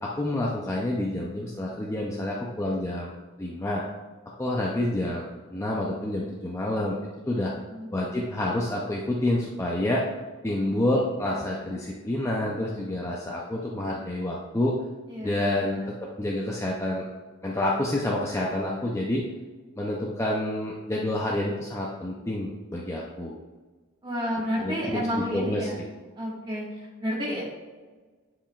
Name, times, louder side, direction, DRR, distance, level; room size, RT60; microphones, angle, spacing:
voice 1, 0.0-3.1 3.4-3.8 4.4-7.0 7.3-7.5 7.9-10.0 10.4-14.7 15.2-17.1 17.4-19.2 19.8-23.4 24.6-25.1 25.3-25.8, left 1 dB, 15° left, -3 dB, 0.5 m, -28 dB
voice 2, 24.0-25.8 26.2-27.4, equal, 25° right, -4 dB, 1.7 m, -31 dB
10.5 x 4.8 x 2.4 m, 1.3 s
head